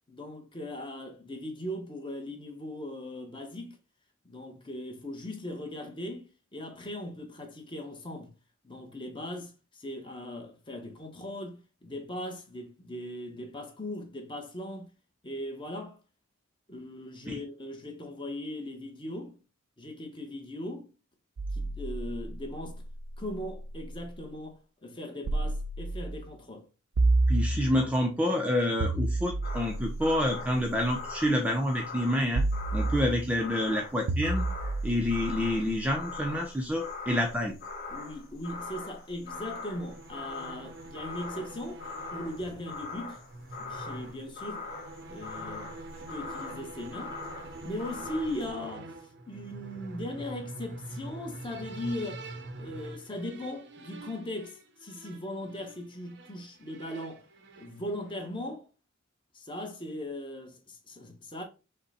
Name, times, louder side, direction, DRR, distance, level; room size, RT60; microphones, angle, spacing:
voice 1, 0.1-3.8 4.2-8.3 8.6-14.9 15.2-16.0 16.7-19.4 19.8-20.9 21.5-22.8 23.2-26.7 37.9-41.8 42.1-43.2 43.6-44.6 45.1-45.7 46.1-47.2 47.6-48.9 49.3-52.3 52.6-57.2 57.6-58.7 59.3-61.4, left 1 dB, 25° left, 1.0 m, -39 dB
sound 1, 21.4-24.1 25.2-26.3 27.0-28.1 28.8-31.1 32.3-33.4 34.1-36.2, right 2 dB, 90° right, 0.5 m, -31 dB
voice 2, 27.3-32.5 32.7-34.5 34.8-37.6, left 1 dB, 5° right, 0.6 m, -28 dB
sound 2, 29.4-48.5, left 3 dB, 45° left, 1.2 m, -42 dB
sound 3, 39.4-58.4, right 2 dB, 55° right, 0.7 m, -45 dB
5.4 x 2.2 x 4.1 m
head